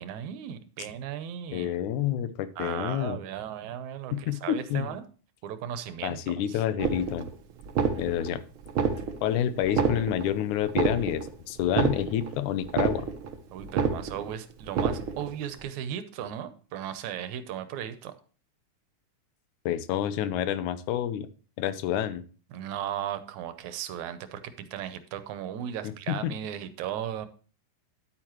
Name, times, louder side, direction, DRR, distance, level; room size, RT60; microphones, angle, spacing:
voice 1, 0.0-1.7 2.6-5.1 5.4-6.6 13.5-18.1 22.5-27.3, right 10 dB, 80° right, 11 dB, 2.2 m, -36 dB
voice 2, 1.5-3.2 4.1-5.0 6.0-7.3 8.0-8.4 9.2-13.1 19.7-21.3 21.6-22.2 26.1-26.4, left 11 dB, 90° left, 14 dB, 2.2 m, -28 dB
sound 1, 6.8-7.3 7.6-8.3 8.7-9.3 9.6-10.3 10.7-11.3 11.6-12.3 12.6-13.3 13.6-14.3 14.7-15.3, right 6 dB, 65° right, 1.4 m, -28 dB
10.0 x 8.9 x 3.0 m, 0.37 s
omnidirectional pair, 3.4 m